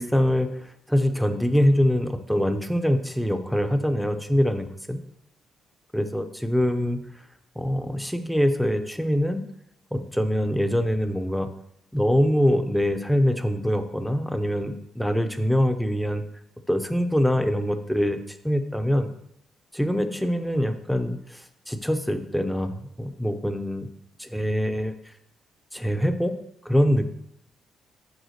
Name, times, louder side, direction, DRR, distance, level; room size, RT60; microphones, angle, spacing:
voice 1, 0.0-5.0 5.9-7.0 7.6-9.4 9.9-11.5 11.9-16.2 16.7-19.1 19.7-23.9 24.2-24.9 25.7-26.4 26.6-27.0, equal, ahead, 7 dB, 0.7 m, -24 dB
8.1 x 3.6 x 6.5 m, 0.75 s
cardioid pair, 90°, 0 cm